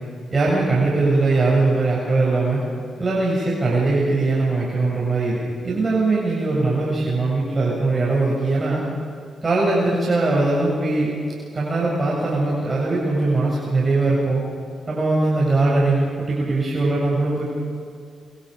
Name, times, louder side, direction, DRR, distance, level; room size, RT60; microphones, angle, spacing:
voice 1, 0.3-2.6 3.0-8.8 9.4-11.1 11.5-14.4 14.9-17.5, right 3 dB, 40° right, -5 dB, 7.3 m, -20 dB
27.5 x 25.0 x 5.3 m, 2.3 s
supercardioid pair, 60°, 0 cm